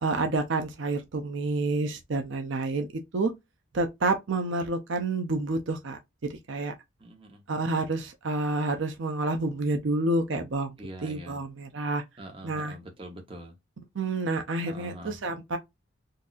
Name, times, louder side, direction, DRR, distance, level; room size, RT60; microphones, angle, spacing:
voice 1, 0.0-2.9 3.1-3.3 3.7-6.0 6.5-6.7 7.5-10.7 11.0-12.0 12.4-12.7 14.0-15.6, right 2 dB, 65° right, 0.6 m, -28 dB
voice 2, 7.0-7.4 10.8-11.4 12.2-13.6 14.6-15.3, right 1 dB, 25° right, 0.9 m, -44 dB
4.0 x 2.6 x 2.4 m
head